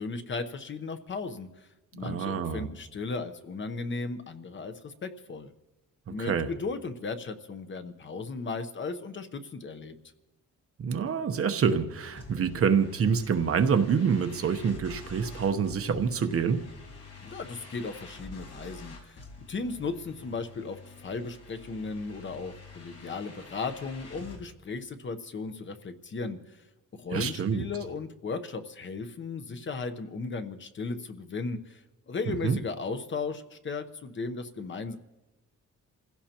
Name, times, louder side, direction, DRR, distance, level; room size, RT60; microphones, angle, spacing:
voice 1, 0.0-1.7 1.9-5.5 6.1-9.9 17.2-26.6 26.9-35.0, left 4 dB, 35° left, 8 dB, 0.9 m, -36 dB
voice 2, 2.0-2.7 6.1-6.5 10.8-16.6 27.1-27.6 32.3-32.6, right 6 dB, 45° right, 8 dB, 0.9 m, -26 dB
sound 1, 12.2-24.4, left 3 dB, 55° left, 4.9 m, -48 dB
28.5 x 16.0 x 2.9 m, 1.0 s
wide cardioid pair, 165°, 32 cm